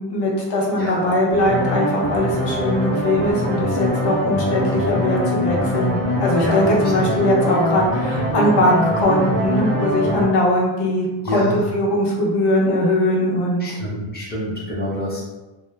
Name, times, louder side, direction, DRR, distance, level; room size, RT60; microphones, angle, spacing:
voice 1, 0.0-13.8, left 1 dB, 55° left, -3 dB, 0.7 m, -20 dB
voice 2, 0.8-1.1 6.4-6.7 11.2-11.6 13.6-15.2, equal, 20° left, -6 dB, 0.6 m, -27 dB
sound 1, 1.3-10.2, equal, 25° right, 0.3 m, -23 dB
2.0 x 2.0 x 3.2 m, 1.1 s
cardioid pair, 160°, 49 cm